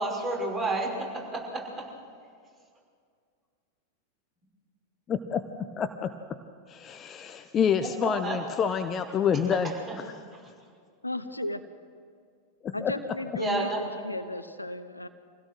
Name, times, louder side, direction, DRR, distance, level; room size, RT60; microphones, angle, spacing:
voice 1, 0.0-1.9 8.0-8.4 9.9-10.0 10.3-10.5 13.4-13.8, right 2 dB, 20° right, -1 dB, 5.8 m, -31 dB
voice 2, 5.1-6.4 6.7-10.0 12.6-12.9, left 7 dB, 25° left, 9 dB, 0.8 m, -28 dB
voice 3, 11.0-11.6 12.7-15.1, left 1 dB, 85° left, 11 dB, 0.9 m, -34 dB
25.5 x 16.5 x 6.3 m, 2.1 s
figure-of-eight pair, 90°, 0 cm